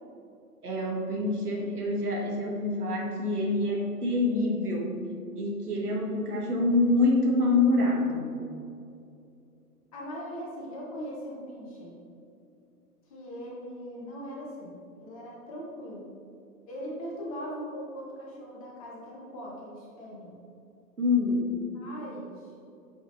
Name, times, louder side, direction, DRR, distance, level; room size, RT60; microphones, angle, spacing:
voice 1, 0.6-4.9 5.3-8.4 21.0-21.5, left 2 dB, 70° right, -1 dB, 1.5 m, -26 dB
voice 2, 9.9-12.0 13.1-16.1 16.7-20.3 21.7-22.5, equal, 20° left, -4 dB, 0.9 m, -40 dB
7.9 x 5.2 x 2.7 m, 2.5 s
figure-of-eight pair, 130°, 47 cm